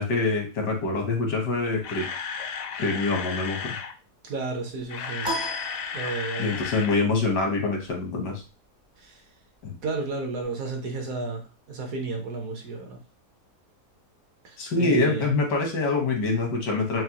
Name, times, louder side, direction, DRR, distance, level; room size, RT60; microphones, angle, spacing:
voice 1, 0.0-2.1 2.8-3.8 6.4-8.4 9.6-9.7 14.6-17.0, left 3 dB, 85° left, 2 dB, 1.7 m, -25 dB
Camera, 1.8-3.9 4.7-7.0 7.3-7.4 7.9-8.0, left 6 dB, 70° left, 0.8 m, -34 dB
voice 2, 4.2-5.4 5.9-6.5 9.0-9.2 9.8-13.0 14.4-15.3, right 3 dB, 60° right, 2 dB, 1.2 m, -32 dB
sound 1, 5.2-6.6, equal, 35° right, 0.4 m, -33 dB
6.0 x 2.1 x 2.9 m, 0.34 s
omnidirectional pair, 1.8 m